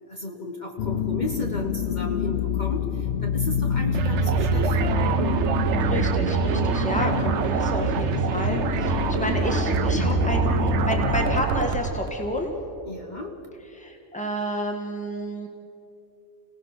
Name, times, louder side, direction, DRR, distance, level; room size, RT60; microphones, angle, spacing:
voice 1, 0.1-5.0 6.4-6.7 12.9-13.3, left 2 dB, 40° left, 2 dB, 1.3 m, -34 dB
sound 1, 0.8-11.4, left 7 dB, 60° left, 0.9 m, -27 dB
sound 2, 3.9-12.2, right 8 dB, 70° right, 1.0 m, -25 dB
voice 2, 5.8-12.5 13.7-15.5, equal, 5° left, 2 dB, 1.9 m, -30 dB
29.5 x 17.5 x 5.9 m, 2.9 s
omnidirectional pair, 1.3 m